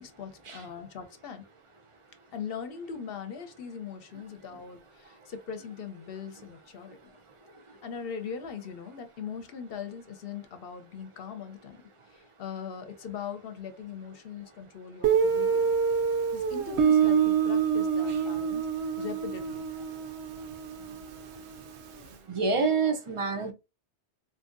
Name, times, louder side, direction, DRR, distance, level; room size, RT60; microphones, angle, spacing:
voice 1, 0.0-1.4 2.3-7.0 7.8-11.8 12.1-15.7 16.3-18.7 19.0-19.7, left 7 dB, 60° left, 0.8 m, -40 dB
Guitar, 15.0-21.7, right 7 dB, 80° right, 0.9 m, -26 dB
voice 2, 22.3-23.5, right 4 dB, 40° right, 0.4 m, -27 dB
3.6 x 2.7 x 2.5 m
omnidirectional pair, 1.1 m